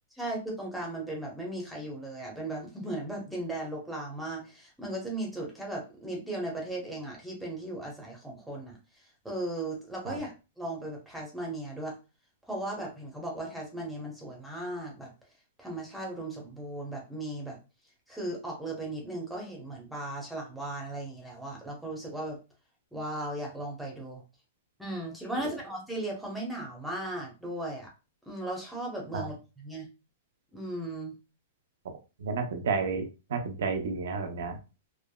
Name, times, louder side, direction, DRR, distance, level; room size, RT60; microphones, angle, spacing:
voice 1, 0.2-8.7 9.2-11.9 12.5-15.1 15.6-17.6 18.1-22.4 22.9-24.2 24.8-27.9 28.3-29.9 30.5-31.1, right 1 dB, ahead, -2 dB, 0.8 m, -37 dB
voice 2, 32.2-34.6, right 4 dB, 75° right, 5 dB, 0.6 m, -31 dB
3.4 x 2.0 x 2.2 m, 0.30 s
hypercardioid pair, 150°, 0 cm